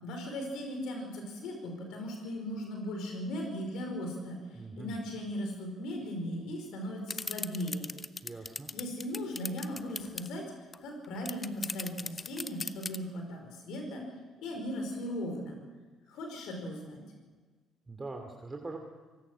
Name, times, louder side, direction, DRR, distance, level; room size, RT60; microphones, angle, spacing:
voice 1, 0.0-7.9 8.7-10.5 10.8-14.0 14.4-15.6 16.1-17.0, equal, 65° left, 3 dB, 4.9 m, -38 dB
voice 2, 4.5-5.0 8.2-8.7 17.9-18.8, right 3 dB, 25° right, 2 dB, 2.8 m, -42 dB
sound 1, 7.1-10.3 10.7-10.8 11.0-13.0, left 4 dB, 30° left, 0.9 m, -37 dB
24.5 x 18.0 x 6.3 m, 1.4 s
hypercardioid pair, 50°, 0 cm